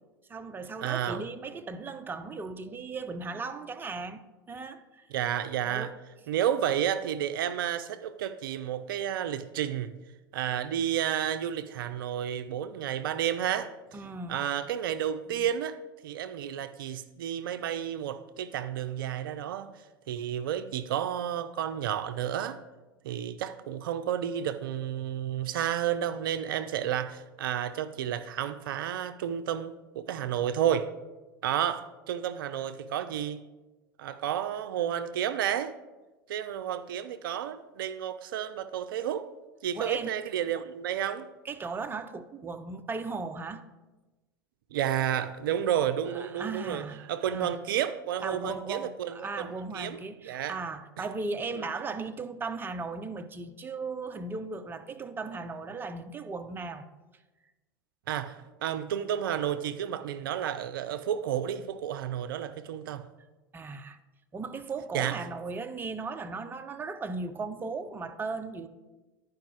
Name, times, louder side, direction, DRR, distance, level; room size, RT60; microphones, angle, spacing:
voice 1, 0.3-4.2 4.5-5.1 5.6-5.9 13.9-14.4 15.3-15.4 39.7-40.1 41.4-43.6 46.1-47.0 47.3-47.6 48.2-56.9 63.5-64.0 64.3-68.7, right 4 dB, 15° right, 0.5 m, -37 dB
voice 2, 0.8-1.2 5.1-5.9 6.3-9.9 10.3-13.7 14.3-15.8 16.0-19.7 20.1-22.6 23.0-30.9 31.4-33.4 34.0-35.7 36.3-39.3 39.6-41.3 44.7-49.5 49.7-50.6 51.0-51.1 58.1-63.1 64.9-65.3, right 10 dB, 70° right, 0.4 m, -31 dB
10.5 x 4.9 x 4.6 m
hypercardioid pair, 85°, 12 cm